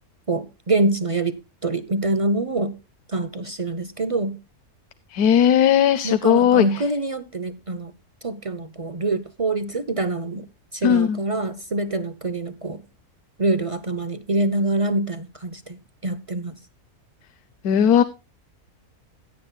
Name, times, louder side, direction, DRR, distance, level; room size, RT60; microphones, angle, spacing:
voice 1, 0.3-2.8 3.1-4.4 6.0-7.9 8.2-10.5 10.7-12.8 13.4-16.5, right 2 dB, 40° right, 0.4 m, -25 dB
voice 2, 5.1-6.8 10.8-11.2 17.6-18.0, left 9 dB, 80° left, 1.2 m, -17 dB
16.5 x 9.5 x 2.3 m
omnidirectional pair, 1.6 m